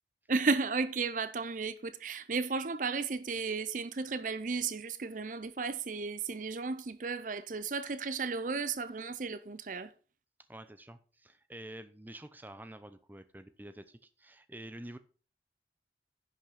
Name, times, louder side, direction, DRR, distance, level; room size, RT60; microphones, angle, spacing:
voice 1, 0.3-9.9, right 4 dB, 45° right, 0.6 m, -34 dB
voice 2, 10.5-15.0, right 1 dB, 10° right, 0.7 m, -48 dB
10.5 x 5.9 x 5.8 m
head